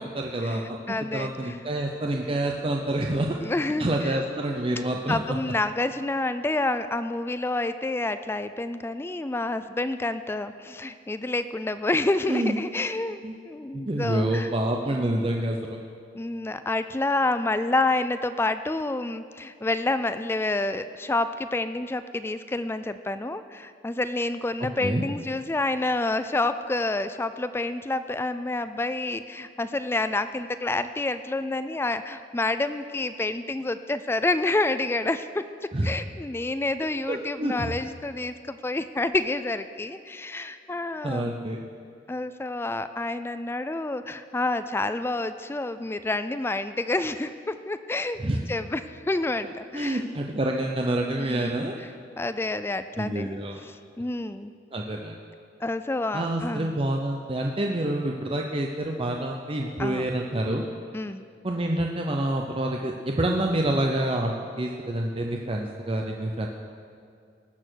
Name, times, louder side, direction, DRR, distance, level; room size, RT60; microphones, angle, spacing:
voice 1, 0.0-0.8 1.1-3.4 3.8-5.4 12.3-12.6 13.2-13.4 13.7-15.8 24.8-25.0 35.7-35.9 37.1-37.7 41.0-41.6 48.2-48.4 49.4-51.7 53.0-53.6 54.7-55.2 56.1-60.7 61.4-66.5, right 1 dB, 30° right, 1 dB, 0.7 m, -27 dB
voice 2, 0.9-1.6 3.4-4.2 5.1-13.2 13.5-14.5 16.1-35.4 35.8-41.3 42.1-50.0 51.2-51.6 52.2-53.4 53.7-54.5 55.6-56.7 59.8-60.1 60.9-61.2, left 2 dB, 15° left, 11 dB, 0.3 m, -28 dB
18.5 x 6.8 x 6.3 m, 2.3 s
head